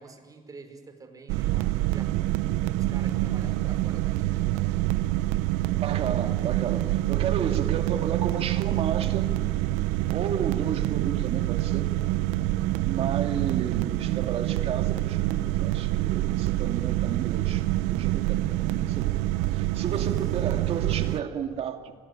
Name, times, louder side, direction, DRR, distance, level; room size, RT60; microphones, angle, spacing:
voice 1, 0.0-4.8 6.4-6.5 7.4-7.7, right 3 dB, 30° right, 6 dB, 5.4 m, -48 dB
sound 1, 1.3-21.2, right 16 dB, 90° right, 0.8 m, -26 dB
voice 2, 5.8-9.3 10.1-11.9 12.8-19.1 19.5-21.9, right 8 dB, 60° right, 6 dB, 2.4 m, -33 dB
26.0 x 20.0 x 9.9 m, 1.5 s
supercardioid pair, 90°, 12 cm